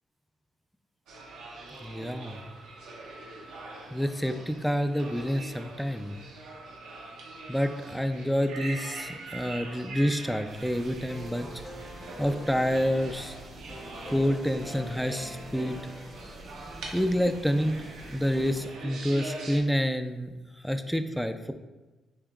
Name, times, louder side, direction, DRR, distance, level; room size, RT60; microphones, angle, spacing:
sound 1, 1.1-19.6, right 2 dB, 90° right, 0.9 m, -43 dB
voice 1, 1.8-2.4 3.9-6.2 7.5-11.5 12.2-13.4 14.1-15.8 16.9-17.8 18.1-20.3 20.6-21.5, equal, ahead, 9 dB, 0.3 m, -28 dB
sound 2, 10.4-18.7, right 2 dB, 40° right, 0.6 m, -47 dB
sound 3, 11.1-17.0, left 1 dB, 35° left, 0.8 m, -46 dB
7.1 x 2.9 x 2.3 m, 1.2 s
cardioid pair, 90°, 0 cm